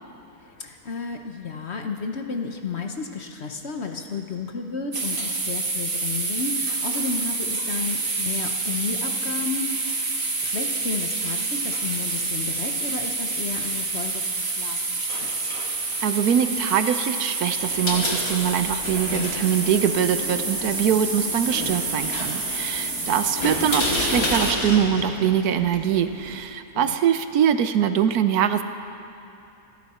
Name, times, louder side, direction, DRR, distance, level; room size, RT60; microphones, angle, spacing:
voice 1, 0.4-10.0 10.4-15.5 18.9-19.3 22.8-23.2 26.7-27.0, left 4 dB, 50° left, 4 dB, 1.1 m, -33 dB
sound 1, 4.9-24.5, right 3 dB, 40° right, 1.7 m, -28 dB
voice 2, 16.0-28.6, right 9 dB, 75° right, 10 dB, 1.2 m, -23 dB
sound 2, 17.6-26.3, left 2 dB, 65° left, 2.5 m, -31 dB
27.0 x 10.5 x 4.3 m, 2.7 s
omnidirectional pair, 1.7 m